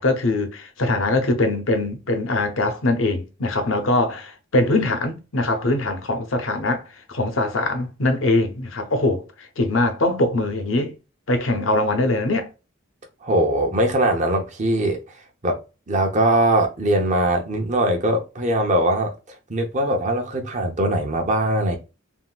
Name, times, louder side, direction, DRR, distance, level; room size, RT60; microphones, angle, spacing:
voice 1, 0.0-10.9 11.3-12.5, left 2 dB, 75° left, 0.8 m, -22 dB
voice 2, 13.2-15.0 15.4-15.6 15.9-19.1 19.5-21.8, right 1 dB, 35° right, 0.7 m, -21 dB
3.6 x 2.5 x 2.2 m
head